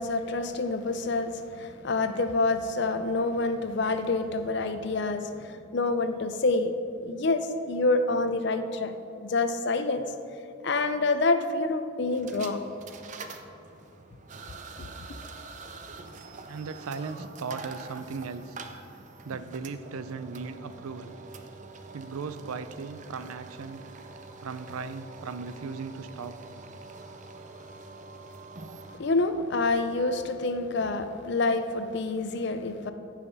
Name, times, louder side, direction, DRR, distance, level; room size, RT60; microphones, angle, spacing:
voice 1, 0.0-6.7 7.0-9.0 9.2-10.0 10.6-12.6 14.8-14.9 28.9-32.9, left 3 dB, 55° left, 9 dB, 0.5 m, -27 dB
sound 1, 12.1-29.0, right 3 dB, 35° right, 0.5 m, -45 dB
voice 2, 16.5-18.6 19.2-21.1 21.9-23.8 24.4-26.4, right 5 dB, 85° right, 12 dB, 0.5 m, -37 dB
15.0 x 5.7 x 4.1 m, 2.7 s
head